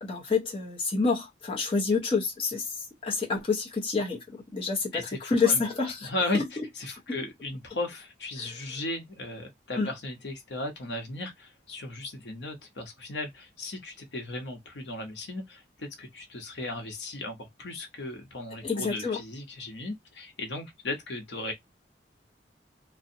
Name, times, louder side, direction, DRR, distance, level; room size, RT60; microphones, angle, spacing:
voice 1, 0.0-2.7 3.0-4.9 5.3-6.4 7.1-7.2 8.4-8.5 9.8-9.9 18.6-19.2, left 4 dB, 30° left, 0.6 m, -28 dB
voice 2, 4.9-5.6 6.0-6.4 6.7-21.5, left 2 dB, 80° left, 0.8 m, -36 dB
2.5 x 2.1 x 2.6 m
head